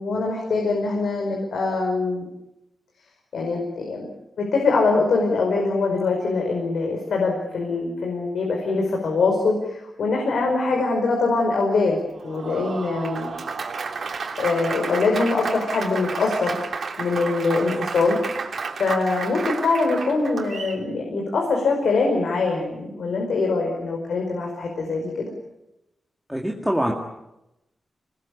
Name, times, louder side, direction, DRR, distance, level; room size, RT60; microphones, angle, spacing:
voice 1, 0.0-2.3 3.3-4.1 4.4-12.0 12.2-13.3 14.4-16.5 17.0-18.2 18.8-25.3, left 3 dB, 85° left, 1 dB, 5.3 m, -23 dB
Applause, 12.1-20.8, right 4 dB, 55° right, 3.1 m, -31 dB
voice 2, 26.3-26.9, equal, ahead, 0 dB, 2.1 m, -24 dB
26.5 x 20.0 x 8.7 m, 0.91 s
wide cardioid pair, 170°, 0 cm